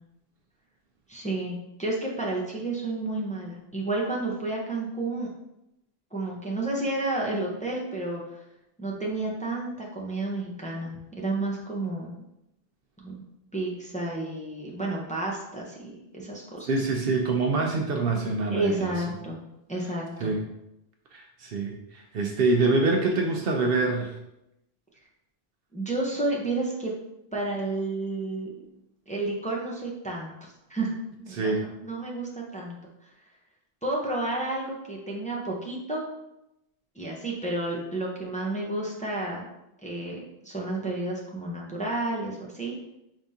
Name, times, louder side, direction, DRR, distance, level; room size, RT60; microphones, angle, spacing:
voice 1, 1.1-5.3 6.1-8.2 8.8-12.2 13.0-13.1 13.5-16.7 18.5-19.4 19.7-20.3 25.7-26.9 27.3-28.5 29.1-30.3 30.7-30.9 31.2-32.8 33.8-36.0 37.0-39.4 39.8-42.7, right 2 dB, 10° left, -3 dB, 0.6 m, -31 dB
voice 2, 16.7-18.9 20.2-20.4 21.1-24.1 31.3-31.7, right 3 dB, 65° right, 2 dB, 0.7 m, -25 dB
5.0 x 3.5 x 2.7 m, 0.87 s
omnidirectional pair, 1.1 m